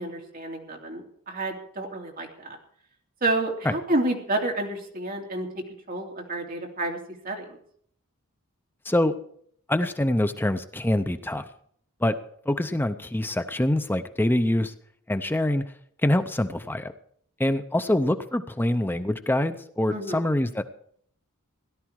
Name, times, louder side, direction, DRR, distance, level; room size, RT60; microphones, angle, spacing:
voice 1, 0.0-2.6 3.2-5.5 5.9-7.0 7.2-7.4 19.9-20.2, right 2 dB, 40° right, 1 dB, 3.1 m, -29 dB
voice 2, 9.7-11.5 12.0-12.2 12.5-14.7 15.1-15.6 16.0-16.9 17.4-20.6, left 1 dB, 10° left, 9 dB, 0.6 m, -25 dB
17.0 x 11.5 x 4.7 m, 0.63 s
head